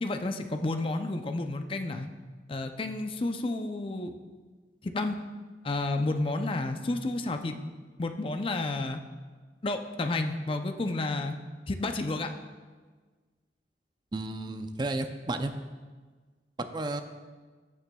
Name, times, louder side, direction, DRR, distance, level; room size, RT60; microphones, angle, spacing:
voice 1, 0.0-2.1 2.5-4.1 4.8-5.2 5.6-7.6 8.0-9.0 9.6-11.4 11.7-12.3, left 2 dB, 30° left, 7 dB, 0.5 m, -31 dB
voice 2, 14.1-15.5 16.6-17.0, right 2 dB, 25° right, 8 dB, 0.4 m, -32 dB
14.5 x 6.9 x 2.3 m, 1.4 s
head